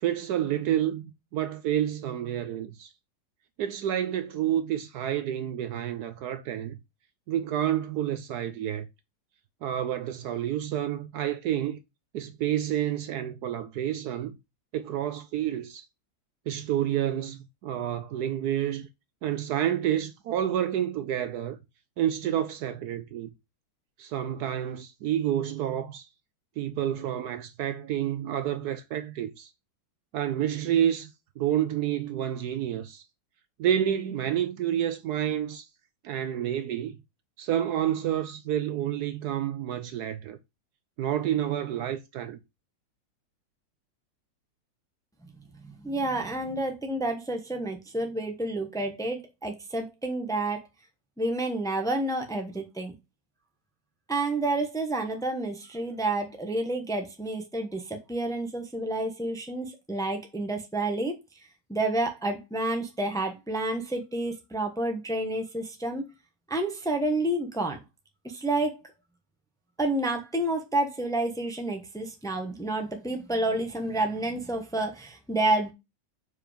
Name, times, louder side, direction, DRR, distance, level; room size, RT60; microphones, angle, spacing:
voice 1, 0.0-2.9 3.6-6.8 7.3-8.9 9.6-11.8 12.1-14.4 14.7-15.8 16.5-18.9 19.2-21.6 22.0-23.3 24.0-26.1 26.6-29.5 30.1-31.1 31.4-33.0 33.6-35.7 36.0-37.0 37.4-40.4 41.0-42.4, right 11 dB, 70° right, 1.1 m, -29 dB
voice 2, 45.6-50.7 51.2-52.9 54.1-61.1 61.7-66.0 66.5-67.8 68.2-68.8 69.8-75.7, right 2 dB, 5° left, 0.9 m, -29 dB
5.0 x 4.8 x 5.0 m
omnidirectional pair, 1.9 m